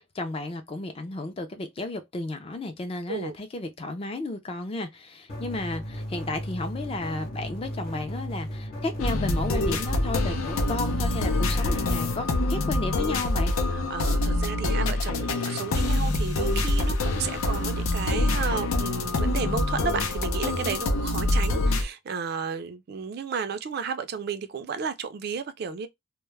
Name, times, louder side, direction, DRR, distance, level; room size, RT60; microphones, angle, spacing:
voice 1, 0.1-13.5, left 2 dB, 25° left, 0.4 m, -33 dB
sound 1, 5.3-12.2, equal, 45° left, 0.9 m, -35 dB
sound 2, 9.0-21.8, left 2 dB, 90° left, 0.5 m, -25 dB
voice 2, 13.7-25.9, right 6 dB, 50° right, 0.3 m, -33 dB
2.2 x 2.0 x 3.1 m
head